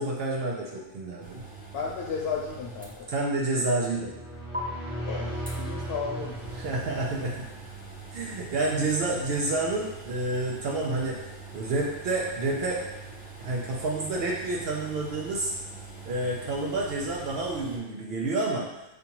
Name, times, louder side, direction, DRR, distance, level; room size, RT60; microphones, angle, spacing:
voice 1, 0.0-1.4 3.1-4.2 6.6-7.5 8.1-11.2 11.5-12.8 13.4-15.5 16.0-18.7, right 2 dB, 70° right, -3 dB, 0.8 m, -29 dB
sound 1, 1.2-3.5 3.8-3.9 4.5-4.6 5.5-17.8, right 3 dB, 15° right, 0.4 m, -43 dB
voice 2, 1.7-3.1 5.0-6.6, left 5 dB, 80° left, -2 dB, 0.8 m, -34 dB
sound 2, 4.0-7.8, right 1 dB, 90° right, 1.6 m, -37 dB
5.2 x 2.5 x 2.9 m, 0.97 s
omnidirectional pair, 1.1 m